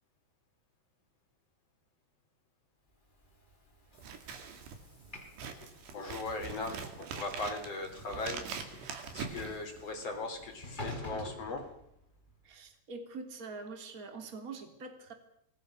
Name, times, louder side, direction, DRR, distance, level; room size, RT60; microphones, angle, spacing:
Train / Sliding door, 3.1-12.4, left 1 dB, 10° left, 4.7 m, -49 dB
Scissors, 3.9-10.2, right 6 dB, 90° right, 4.7 m, -43 dB
voice 1, 5.9-8.4 8.7-11.6, left 3 dB, 40° left, 3 dB, 4.3 m, -39 dB
voice 2, 12.4-15.1, right 4 dB, 25° right, 5 dB, 3.0 m, -44 dB
26.5 x 20.5 x 6.4 m, 0.76 s
omnidirectional pair, 4.7 m